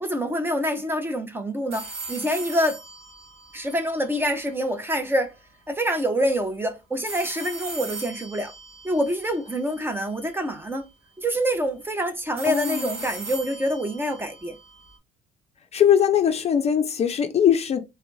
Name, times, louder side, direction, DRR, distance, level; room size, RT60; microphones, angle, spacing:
voice 1, 0.0-2.8 3.5-5.3 5.7-8.5 8.8-10.8 11.2-14.6, equal, 15° right, 0.6 m, -26 dB
sound 1, 1.7-4.7 7.1-10.2 12.4-15.0, right 3 dB, 65° right, 1.7 m, -39 dB
voice 2, 12.4-13.1 15.7-17.8, left 9 dB, 40° left, 0.5 m, -21 dB
3.3 x 2.4 x 3.0 m
cardioid pair, 110°, 17 cm